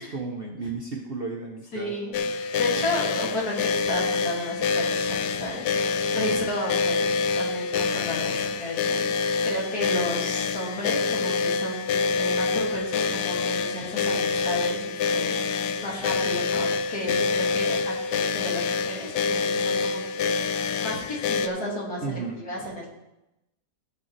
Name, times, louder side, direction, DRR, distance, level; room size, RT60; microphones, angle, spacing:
voice 1, 0.0-1.9 6.1-6.3 17.1-17.3 22.0-22.4, right 4 dB, 40° right, 0 dB, 1.0 m, -34 dB
voice 2, 1.7-22.9, left 1 dB, 60° left, -4 dB, 3.1 m, -33 dB
sound 1, 2.1-21.5, left 4 dB, 75° left, 1.2 m, -26 dB
16.0 x 6.8 x 3.4 m, 0.92 s
omnidirectional pair, 1.9 m